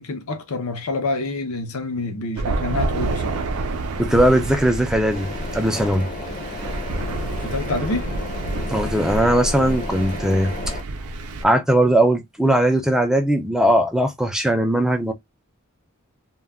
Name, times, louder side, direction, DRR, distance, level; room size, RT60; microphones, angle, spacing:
voice 1, 0.0-3.4 7.4-8.1, left 2 dB, 75° left, 0.7 m, -27 dB
Thunder, 2.4-11.4, right 2 dB, 80° right, 0.5 m, -28 dB
voice 2, 4.0-5.3 5.5-6.1 8.7-10.5 11.4-15.1, right 1 dB, 5° right, 0.4 m, -19 dB
sound 1, 5.1-10.8, left 3 dB, 35° left, 0.6 m, -34 dB
2.2 x 2.2 x 3.4 m
head